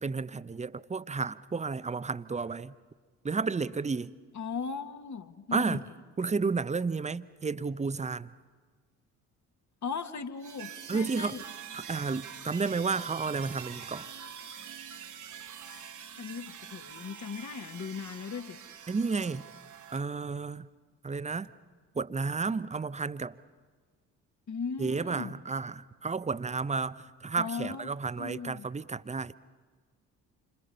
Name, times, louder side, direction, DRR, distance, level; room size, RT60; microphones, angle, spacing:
voice 1, 0.0-2.7 3.2-4.2 5.5-5.9 6.2-8.3 10.9-11.4 11.7-14.1 18.9-19.5 19.9-20.7 21.0-21.5 21.9-23.4 24.8-29.3, right 4 dB, 15° right, 0.7 m, -32 dB
voice 2, 4.3-5.8 9.8-11.4 15.7-15.9 16.2-18.6 24.5-25.3 27.4-27.9 28.2-28.7, left 5 dB, 40° left, 1.7 m, -38 dB
sound 1, 10.4-20.0, right 8 dB, 40° right, 1.4 m, -45 dB
28.5 x 25.5 x 5.5 m
figure-of-eight pair, 45°, 45 cm